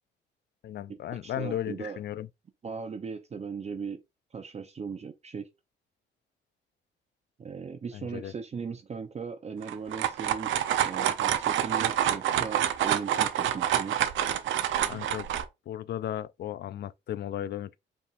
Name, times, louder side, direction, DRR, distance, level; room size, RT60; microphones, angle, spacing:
voice 1, 0.6-2.3 7.9-8.3 14.9-15.3 15.7-17.8, left 11 dB, 55° left, 0.4 m, -35 dB
voice 2, 1.2-2.0 2.6-4.0 4.3-5.5 7.4-10.5 10.8-14.0, right 5 dB, 35° right, 0.6 m, -38 dB
sound 1, 9.6-15.4, right 11 dB, 75° right, 0.6 m, -27 dB
5.4 x 3.4 x 2.4 m
cardioid pair, 90°, 20 cm